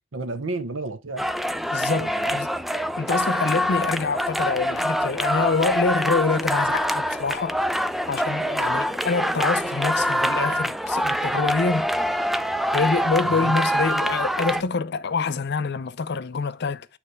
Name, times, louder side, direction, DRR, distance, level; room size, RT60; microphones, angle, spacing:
voice 1, 0.1-1.3 1.9-2.4 13.2-13.5, right 3 dB, 80° right, 0.9 m, -32 dB
sound 1, 1.2-14.6, equal, ahead, 0.3 m, -25 dB
voice 2, 1.7-2.5 3.0-7.6 8.1-11.9 12.7-16.9, left 4 dB, 60° left, 0.6 m, -26 dB
9.1 x 3.3 x 4.5 m
head